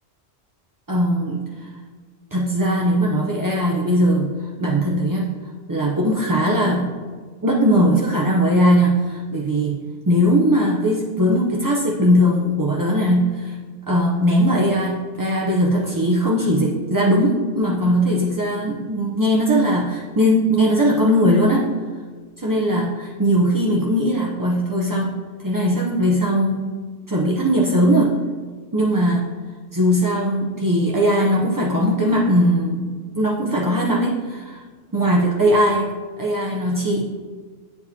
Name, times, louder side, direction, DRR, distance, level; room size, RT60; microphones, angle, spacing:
voice 1, 0.9-1.7 2.3-4.3 4.6-5.4 5.7-7.0 7.4-9.8 10.1-13.6 13.9-21.7 22.4-28.2 28.7-29.3 29.7-34.6 34.9-37.0, equal, 30° right, -4 dB, 0.4 m, -19 dB
8.2 x 4.6 x 2.7 m, 1.5 s
omnidirectional pair, 1.2 m